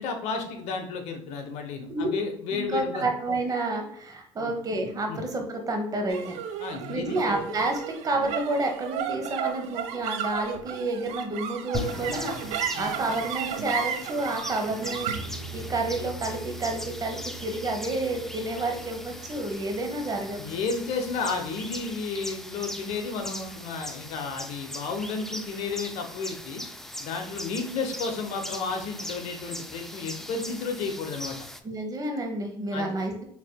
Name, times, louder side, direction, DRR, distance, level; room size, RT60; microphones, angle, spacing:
voice 1, 0.0-3.1 4.4-4.6 5.1-5.2 6.6-7.4 12.7-12.9 20.4-26.6 27.0-31.4 32.7-32.9, left 4 dB, 60° left, 5 dB, 0.9 m, -32 dB
voice 2, 2.5-6.4 6.9-20.4 31.6-33.2, right 2 dB, 30° right, 3 dB, 1.0 m, -30 dB
sound 1, 6.1-22.6, right 9 dB, 65° right, 0.5 m, -36 dB
sound 2, 11.7-21.9, left 4 dB, 40° left, 1.1 m, -43 dB
sound 3, 11.7-31.6, left 1 dB, 5° left, 0.4 m, -40 dB
5.8 x 2.8 x 2.2 m, 0.70 s
supercardioid pair, 95°, 12 cm